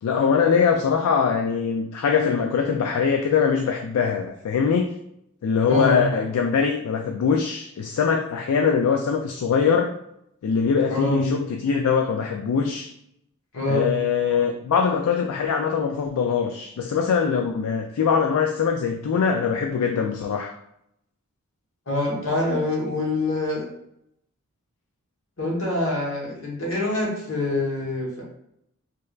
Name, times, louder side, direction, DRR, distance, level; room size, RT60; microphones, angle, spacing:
voice 1, 0.0-5.0 5.4-9.9 10.4-12.9 13.7-20.5, left 6 dB, 80° left, 3 dB, 0.3 m, -22 dB
voice 2, 5.7-6.1 10.9-11.3 13.5-13.9 21.9-23.6 25.4-28.2, left 2 dB, 65° left, -3 dB, 1.2 m, -25 dB
3.3 x 3.2 x 2.4 m, 0.77 s
head